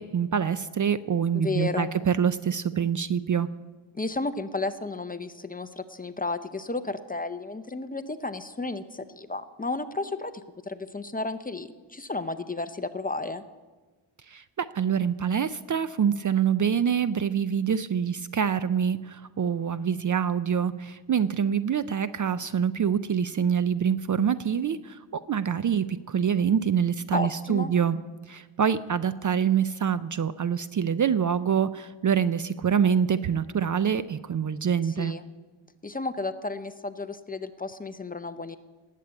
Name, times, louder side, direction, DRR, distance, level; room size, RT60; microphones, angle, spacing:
voice 1, 0.0-3.5 14.3-28.0 28.3-35.1, right 7 dB, 40° right, 14 dB, 0.4 m, -25 dB
voice 2, 1.4-1.9 4.0-10.3 10.7-13.4 27.1-27.7 35.0-35.3 35.8-38.6, left 3 dB, 20° left, 10 dB, 0.6 m, -32 dB
19.0 x 8.3 x 8.6 m, 1.3 s
wide cardioid pair, 140°, 49 cm